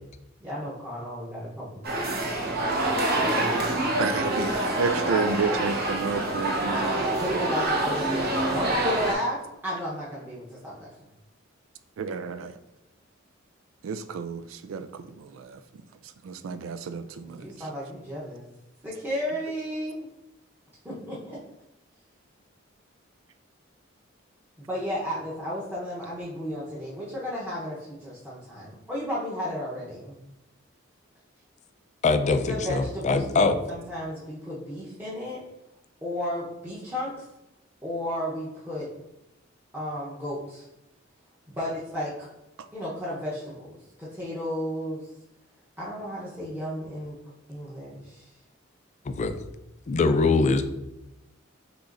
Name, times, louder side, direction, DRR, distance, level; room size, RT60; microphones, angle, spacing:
voice 1, 0.4-2.1 3.2-3.8 7.2-10.9 17.2-18.4 18.8-20.1 20.8-21.4 24.7-30.2 32.3-35.4 36.0-37.1 37.8-38.9 39.7-40.6 41.5-42.1 42.7-45.0 45.8-47.2 47.5-48.3, equal, 10° right, -8 dB, 0.9 m, -33 dB
sound 1, 1.8-9.1, right 1 dB, 55° right, 0.9 m, -26 dB
voice 2, 4.0-7.0 12.0-12.5 13.8-15.6 16.2-17.5, right 5 dB, 85° right, 11 dB, 0.4 m, -31 dB
voice 3, 32.0-33.6 49.0-49.4 49.9-50.7, left 3 dB, 35° left, 9 dB, 0.4 m, -23 dB
6.1 x 3.1 x 2.5 m, 0.90 s
head